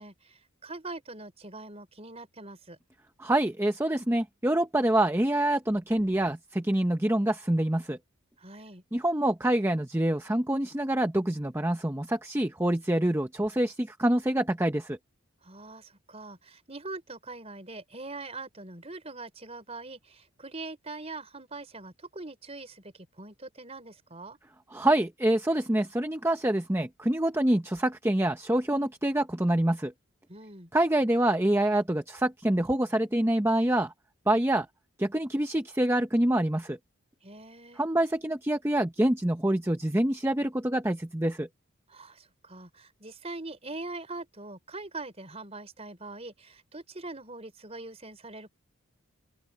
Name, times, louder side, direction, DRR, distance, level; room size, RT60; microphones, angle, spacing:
voice 1, 0.0-2.8 8.4-8.8 15.4-24.4 30.3-30.7 37.2-37.8 41.9-48.5, right 2 dB, 30° right, 4.5 m, -42 dB
voice 2, 3.2-8.0 8.9-15.0 24.7-29.9 30.7-33.9 34.3-34.7 35.0-36.8 37.8-41.5, right 1 dB, 10° right, 0.7 m, -26 dB
open air
head